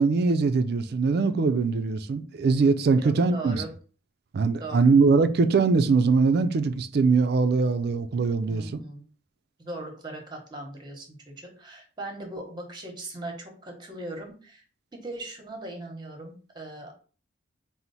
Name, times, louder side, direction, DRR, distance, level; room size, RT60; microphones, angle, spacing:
voice 1, 0.0-3.6 4.3-8.8, right 4 dB, 55° right, 0.4 m, -22 dB
voice 2, 3.0-3.7 4.6-4.9 8.5-9.0 9.6-14.6 14.9-16.9, right 2 dB, 20° right, 0.9 m, -39 dB
4.4 x 2.0 x 4.0 m
head